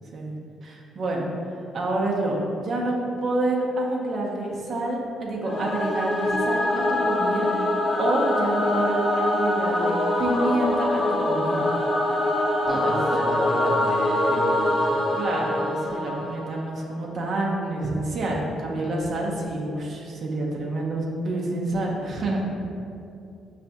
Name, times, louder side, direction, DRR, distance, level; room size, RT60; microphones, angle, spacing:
voice 1, 0.6-1.2 1.7-7.5 8.0-11.7 12.6-13.0 15.2-22.5, right 2 dB, 55° right, -2 dB, 0.7 m, -28 dB
Singing / Musical instrument, 5.4-16.7, left 1 dB, 55° left, 0.7 m, -24 dB
voice 2, 12.6-15.1, equal, 15° left, -3 dB, 0.8 m, -32 dB
5.6 x 3.3 x 2.6 m, 2.6 s
cardioid pair, 90°, 0 cm